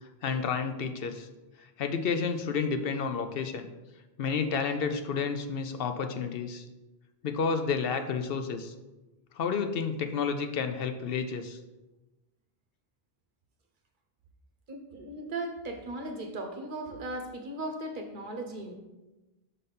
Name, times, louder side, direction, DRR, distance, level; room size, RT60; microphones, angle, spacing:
voice 1, 0.2-1.3 1.8-3.7 4.2-6.6 7.2-8.7 9.3-11.6, left 5 dB, 70° left, 7 dB, 0.8 m, -30 dB
voice 2, 14.7-18.7, right 2 dB, 55° right, 4 dB, 1.0 m, -37 dB
5.6 x 4.0 x 5.4 m, 1.1 s
omnidirectional pair, 1.1 m